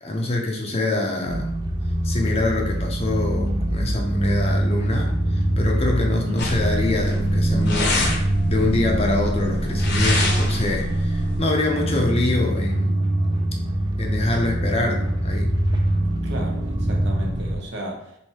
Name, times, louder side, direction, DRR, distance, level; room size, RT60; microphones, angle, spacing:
voice 1, 0.0-1.5 2.0-13.0 14.0-15.6, left 2 dB, 30° left, 1 dB, 0.6 m, -25 dB
sound 1, 1.3-17.6, right 1 dB, 25° right, 0.5 m, -24 dB
voice 2, 6.1-6.5 16.2-18.2, equal, 65° right, -1 dB, 0.9 m, -34 dB
FX Hoodie Zipper LR, 6.4-11.4, left 2 dB, 60° left, 0.8 m, -26 dB
3.2 x 2.7 x 4.2 m, 0.74 s
head